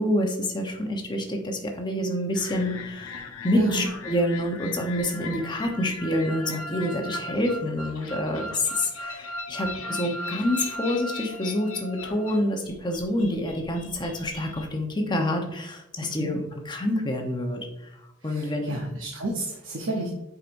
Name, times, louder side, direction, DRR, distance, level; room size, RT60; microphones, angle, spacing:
voice 1, 0.0-3.2 3.4-17.6 18.2-18.8, left 1 dB, 20° left, 2 dB, 0.9 m, -27 dB
sound 1, 2.3-14.7, left 2 dB, 75° left, 0.8 m, -38 dB
voice 2, 3.5-3.9 16.2-16.3 18.2-20.1, right 2 dB, 60° right, -1 dB, 0.8 m, -30 dB
7.5 x 5.0 x 2.6 m, 0.85 s
head